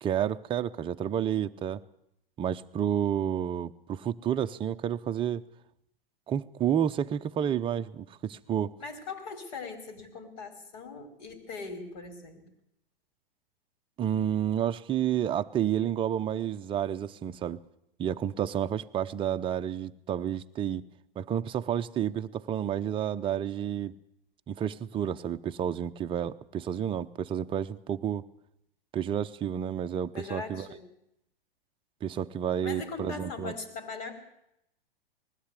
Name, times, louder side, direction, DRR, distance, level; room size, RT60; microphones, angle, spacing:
voice 1, 0.0-1.8 2.4-5.4 6.3-8.8 14.0-17.6 18.0-20.9 21.2-24.0 24.5-28.3 28.9-30.6 32.0-33.5, right 9 dB, 20° right, 8 dB, 0.7 m, -30 dB
voice 2, 8.8-12.5 30.1-30.8 32.6-34.1, left 4 dB, 50° left, 7 dB, 5.0 m, -40 dB
20.5 x 16.0 x 8.3 m, 0.79 s
figure-of-eight pair, 110°, 29 cm